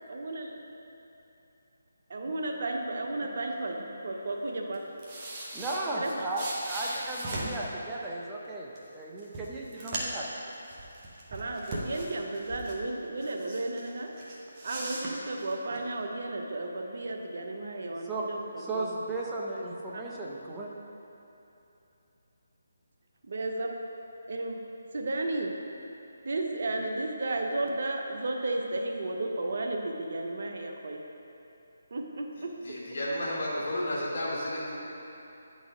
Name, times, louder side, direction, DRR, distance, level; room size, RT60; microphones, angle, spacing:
voice 1, 0.1-0.5 2.1-4.9 5.9-6.3 11.3-14.1 14.6-19.0 19.9-20.1 23.2-23.7 24.3-24.6 24.9-25.6 26.2-31.0 31.9-32.8, right 2 dB, 60° right, 2 dB, 0.7 m, -33 dB
sound 1, 4.7-7.7 8.7-8.8 9.2-10.3 10.6-12.8 13.2-13.9 14.2-15.8, right 1 dB, 30° right, 1.1 m, -38 dB
voice 2, 5.5-10.2 18.0-18.3 18.6-20.7, right 2 dB, 10° right, -4 dB, 0.8 m, -35 dB
voice 3, 32.6-34.8, left 1 dB, 55° left, -5 dB, 1.5 m, -32 dB
10.0 x 4.1 x 3.7 m, 2.9 s
figure-of-eight pair, 155°, 0 cm